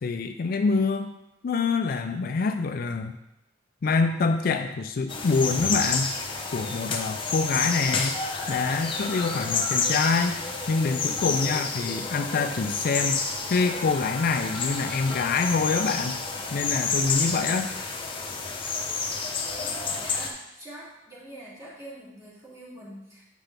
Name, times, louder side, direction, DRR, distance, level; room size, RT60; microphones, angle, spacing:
voice 1, 0.0-1.1 1.4-3.1 3.8-6.2 6.5-8.2 8.5-10.4 10.7-16.2 16.5-17.7, left 4 dB, 50° left, 7 dB, 0.4 m, -26 dB
sound 1, 5.1-20.3, left 4 dB, 30° left, 0.8 m, -30 dB
voice 2, 19.5-23.2, right 1 dB, 15° right, -8 dB, 2.8 m, -44 dB
9.0 x 5.7 x 3.4 m, 0.89 s
head